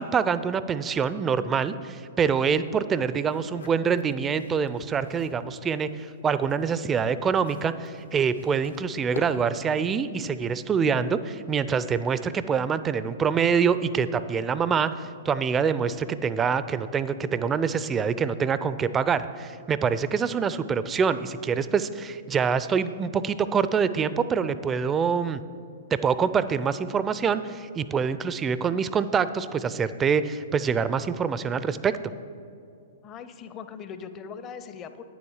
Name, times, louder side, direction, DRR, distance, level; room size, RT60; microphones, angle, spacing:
voice 1, 0.0-14.9 15.2-25.4 26.0-32.0, right 6 dB, 20° right, 14 dB, 0.4 m, -25 dB
sound 1, 3.2-5.5 5.9-9.7, left 4 dB, 75° left, 0.7 m, -46 dB
voice 2, 33.0-35.0, left 6 dB, 30° left, 11 dB, 0.5 m, -40 dB
9.4 x 7.1 x 4.8 m, 2.5 s
figure-of-eight pair, 110°, 0 cm